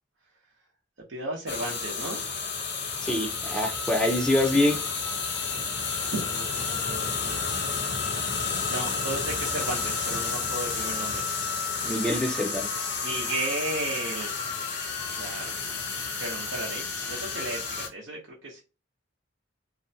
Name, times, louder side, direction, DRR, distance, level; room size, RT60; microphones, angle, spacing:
voice 1, 1.1-2.2 6.1-7.8 8.7-11.2 13.0-14.3 15.1-15.5 16.2-18.6, right 2 dB, 85° right, 0.7 m, -34 dB
sound 1, 1.5-17.9, left 5 dB, 60° left, 0.6 m, -31 dB
voice 2, 3.0-4.8 11.8-12.9, left 1 dB, 5° left, 0.4 m, -25 dB
2.5 x 2.1 x 2.6 m
head